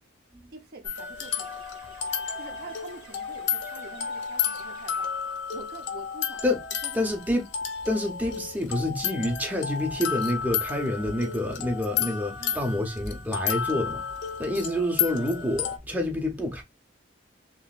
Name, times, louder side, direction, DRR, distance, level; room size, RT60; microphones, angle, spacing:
voice 1, 0.5-1.7 2.4-6.4 6.8-7.1 12.4-12.9, right 3 dB, 50° right, 0.8 m, -46 dB
sound 1, 0.8-15.8, left 8 dB, 65° left, 0.6 m, -32 dB
sound 2, 1.3-5.4, right 2 dB, 80° right, 1.9 m, -52 dB
voice 2, 6.9-7.4 7.9-14.0 14.4-16.6, left 1 dB, 10° right, 0.7 m, -28 dB
3.7 x 3.0 x 2.4 m
head